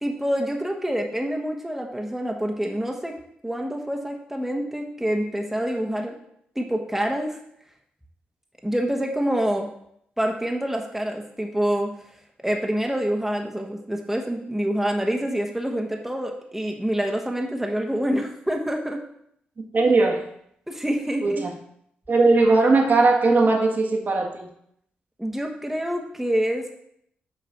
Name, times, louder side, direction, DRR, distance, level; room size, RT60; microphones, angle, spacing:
voice 1, 0.0-3.2 3.4-6.1 6.5-7.4 8.6-9.7 10.2-11.9 12.4-19.0 20.7-21.5 25.2-26.8, equal, 5° right, 1 dB, 1.2 m, -26 dB
voice 2, 19.7-20.2 21.2-21.5 22.1-24.5, right 3 dB, 50° right, 1 dB, 1.5 m, -19 dB
6.3 x 3.9 x 5.9 m, 0.71 s
supercardioid pair, 50°, 4 cm